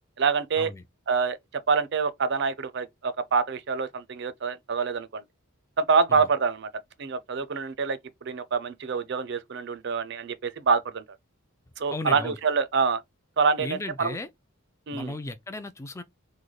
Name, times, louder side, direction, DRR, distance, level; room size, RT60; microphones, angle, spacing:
voice 1, 0.2-0.7 1.1-1.4 1.7-5.2 5.8-6.7 7.0-11.0 11.8-13.0 13.4-14.2 14.9-15.1, right 5 dB, 50° right, 0.4 m, -26 dB
voice 2, 11.9-12.4 13.6-14.3 14.9-16.0, left 2 dB, 15° left, 0.3 m, -35 dB
3.2 x 2.2 x 3.8 m
head